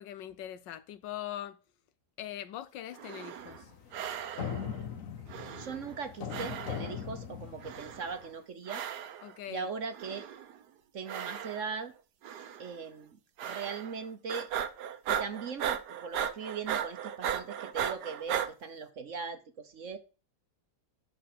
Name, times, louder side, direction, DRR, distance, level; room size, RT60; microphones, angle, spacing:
voice 1, 0.0-1.6 2.2-3.7 9.2-9.7, left 11 dB, 80° left, 1.4 m, -41 dB
sound 1, 2.9-3.6 3.9-4.7 5.3-6.0 6.3-7.0 7.6-8.3 8.7-9.3 9.9-10.6 11.1-11.8 12.2-12.7 13.4-14.0 14.3-18.5, right 9 dB, 70° right, 1.4 m, -37 dB
sound 2, 3.4-8.3, left 7 dB, 55° left, 1.2 m, -40 dB
voice 2, 5.3-8.8 9.5-10.3 10.9-11.9 12.6-13.2 13.4-14.5 15.1-20.0, right 5 dB, 50° right, 1.1 m, -39 dB
12.0 x 4.3 x 5.9 m
omnidirectional pair, 1.9 m